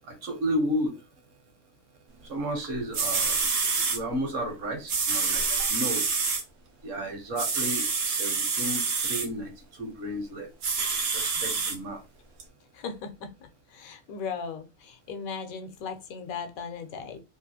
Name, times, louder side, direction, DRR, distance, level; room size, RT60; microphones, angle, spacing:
voice 1, 0.1-1.0 2.3-3.4 3.9-5.4 5.7-6.0 6.8-9.5 9.8-10.5 11.1-12.0, equal, 65° right, 3 dB, 1.3 m, -32 dB
sound 1, 2.6-2.7 2.9-4.0 4.9-6.4 7.4-9.3 10.6-11.7 12.4-12.5, right 4 dB, 85° right, 1.3 m, -27 dB
voice 2, 12.7-13.3 13.7-17.2, left 5 dB, 85° left, 7 dB, 1.1 m, -37 dB
3.2 x 2.4 x 2.7 m, 0.27 s
omnidirectional pair, 1.4 m